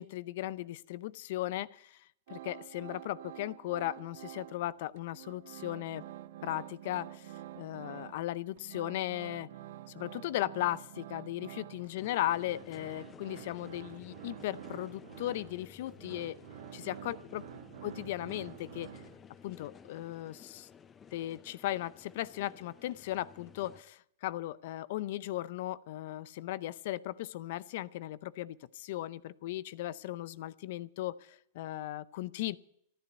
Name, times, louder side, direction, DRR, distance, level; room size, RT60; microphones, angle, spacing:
voice 1, 0.0-2.0 2.3-6.0 6.4-9.5 9.9-16.4 16.7-17.4 17.8-18.9 19.4-20.7 21.1-32.6, left 15 dB, 60° left, 19 dB, 0.6 m, -37 dB
sound 1, 2.3-4.7 5.0-8.3 8.6-19.4, right 13 dB, 70° right, 0.7 m, -48 dB
sound 2, 12.0-23.8, left 7 dB, 20° left, 0.7 m, -55 dB
12.5 x 11.5 x 8.0 m, 0.73 s
hypercardioid pair, 125°, 0 cm